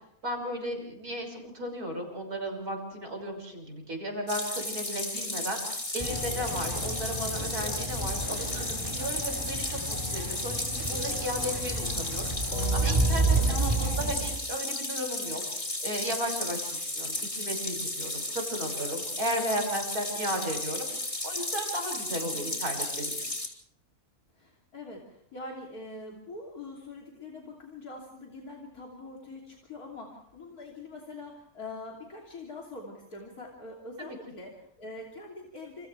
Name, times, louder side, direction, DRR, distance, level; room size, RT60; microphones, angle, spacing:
voice 1, 0.2-5.6 5.9-12.3 12.7-15.4 15.8-20.9 21.2-23.3, equal, 85° right, 2 dB, 6.7 m, -35 dB
sound 1, 4.3-23.5, left 1 dB, 30° left, 3.6 m, -34 dB
sound 2, 6.0-14.1, right 1 dB, 15° right, 4.7 m, -33 dB
sound 3, 6.0-14.4, right 5 dB, 55° right, 2.2 m, -35 dB
voice 2, 13.3-13.8 22.3-22.6 24.3-35.9, left 2 dB, 75° left, -2 dB, 3.7 m, -44 dB
29.5 x 29.0 x 3.4 m, 0.71 s
omnidirectional pair, 1.6 m